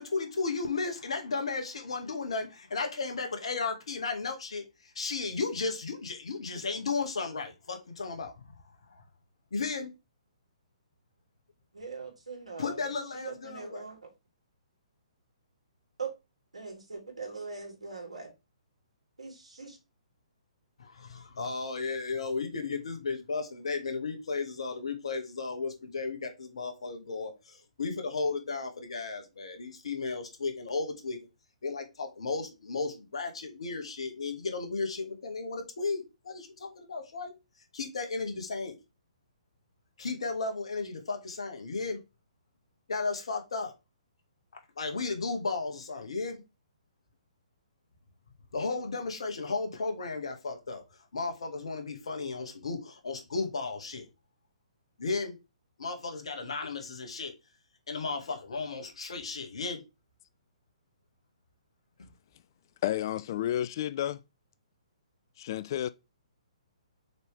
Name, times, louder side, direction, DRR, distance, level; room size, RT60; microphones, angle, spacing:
voice 1, 0.0-8.3 8.9-9.0 9.5-9.9 12.6-13.9 20.8-31.2 31.6-37.3 37.7-38.8 40.0-42.0 42.9-43.7 44.8-46.4 48.5-50.8 51.1-54.0 55.0-55.4 55.8-57.3 57.9-59.8 62.0-62.1, left 4 dB, 60° left, 1.9 m, -34 dB
voice 2, 11.7-12.8 13.1-14.1 16.0-16.1 16.5-18.3 19.2-19.8, right 5 dB, 75° right, 3.8 m, -41 dB
voice 3, 62.8-64.2 65.4-65.9, left 12 dB, 35° left, 0.4 m, -31 dB
6.5 x 4.9 x 3.4 m
figure-of-eight pair, 125°, 4 cm